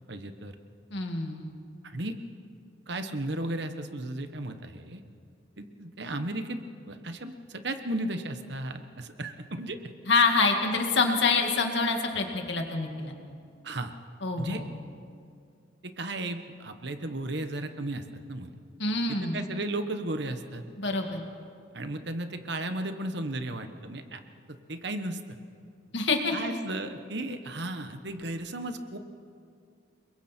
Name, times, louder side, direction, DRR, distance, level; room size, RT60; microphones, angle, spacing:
voice 1, 0.1-0.5 1.8-2.1 2.9-5.0 5.6-6.6 6.9-9.8 13.6-13.9 14.4-14.6 15.8-18.5 19.1-20.6 21.7-24.2 24.5-25.2 26.3-29.0, right 1 dB, 60° right, 8 dB, 1.3 m, -35 dB
voice 2, 0.9-1.5 10.1-13.1 14.2-14.7 18.8-19.4 20.8-21.2 25.9-26.3, left 3 dB, 65° left, 3 dB, 2.2 m, -26 dB
30.0 x 22.0 x 4.5 m, 2.3 s
head